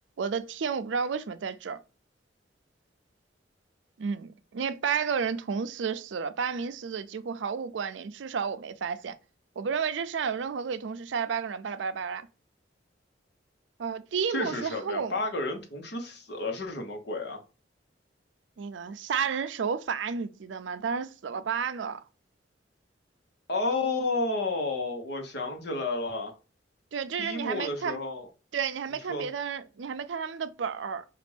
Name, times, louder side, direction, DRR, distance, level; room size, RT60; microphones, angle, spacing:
voice 1, 0.2-1.8 4.0-9.1 9.6-12.3 13.8-15.3 18.6-22.0 26.9-28.0 28.5-31.1, right 6 dB, 80° right, 0.4 m, -31 dB
voice 2, 14.3-17.4 23.5-26.4 27.2-28.3 29.1-29.3, left 2 dB, 65° left, 1.1 m, -31 dB
5.0 x 2.5 x 3.3 m
head